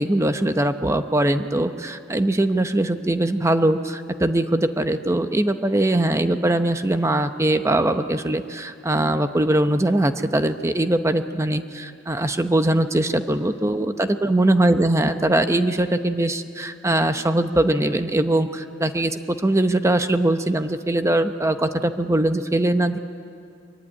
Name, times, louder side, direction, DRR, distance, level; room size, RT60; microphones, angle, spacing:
voice 1, 0.0-23.0, right 1 dB, 15° right, 8 dB, 0.7 m, -21 dB
23.5 x 23.0 x 9.9 m, 2.3 s
head